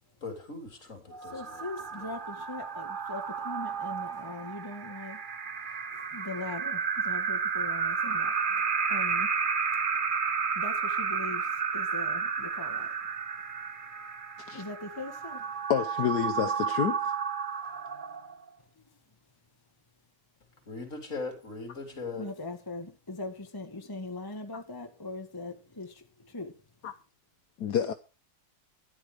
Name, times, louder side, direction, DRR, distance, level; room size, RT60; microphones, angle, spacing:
voice 1, 0.2-1.7 2.0-2.1 20.7-22.3, left 3 dB, 45° left, 4.3 m, -40 dB
sound 1, 1.1-18.5, right 6 dB, 35° right, 0.9 m, -32 dB
voice 2, 1.3-5.2 5.9-8.6 8.9-9.3 10.5-12.9 14.5-15.7 18.8-18.9 22.1-26.5, left 2 dB, 15° left, 1.5 m, -41 dB
voice 3, 15.7-17.1 24.5-24.6 26.8-26.9 27.6-27.9, left 9 dB, 70° left, 1.4 m, -29 dB
13.5 x 11.0 x 5.0 m
omnidirectional pair, 1.9 m